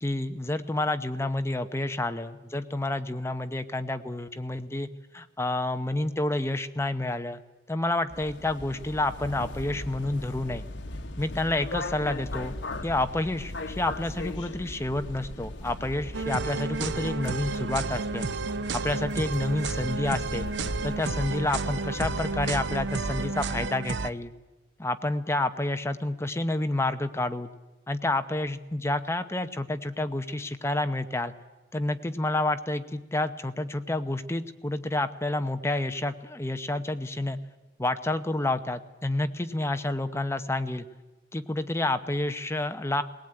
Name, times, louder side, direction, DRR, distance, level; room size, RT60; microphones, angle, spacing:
voice 1, 0.0-4.9 5.1-7.4 7.7-10.6 11.2-12.5 12.8-18.3 18.7-20.5 20.8-24.3 24.8-27.5 27.9-31.3 31.7-37.4 37.8-40.9 41.3-43.0, left 2 dB, 15° left, 9 dB, 0.8 m, -29 dB
sound 1, 8.1-23.7, left 2 dB, 90° left, 1.1 m, -38 dB
sound 2, 16.1-24.1, right 4 dB, 80° right, 0.7 m, -31 dB
19.5 x 18.5 x 8.9 m, 1.1 s
head